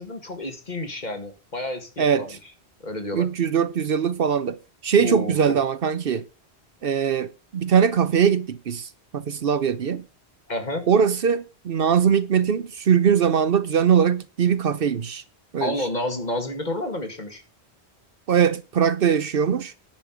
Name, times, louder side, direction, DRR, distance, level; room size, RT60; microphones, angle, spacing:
voice 1, 0.0-2.3 2.8-3.3 5.0-5.6 10.5-10.9 15.6-17.4, left 1 dB, 45° left, 2.0 m, -30 dB
voice 2, 2.0-2.4 3.1-6.2 6.8-10.0 10.9-15.2 15.5-15.8 18.3-19.7, right 7 dB, 60° right, 0.9 m, -21 dB
10.5 x 5.5 x 7.5 m
omnidirectional pair, 1.1 m